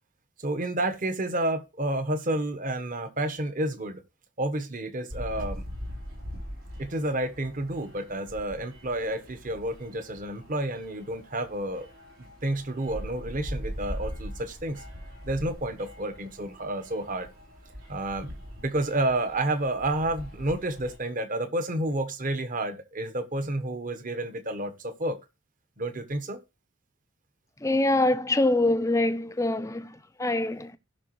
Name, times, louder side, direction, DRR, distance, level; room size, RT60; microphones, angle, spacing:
voice 1, 0.4-4.0 4.4-5.6 6.8-11.9 12.2-14.8 15.2-17.3 17.9-25.2 25.8-26.4, right 1 dB, 40° right, 1.1 m, -30 dB
sound 1, 5.1-21.0, equal, 80° right, 3.9 m, -41 dB
voice 2, 27.6-30.8, left 2 dB, 15° left, 0.5 m, -25 dB
16.5 x 5.8 x 3.1 m
head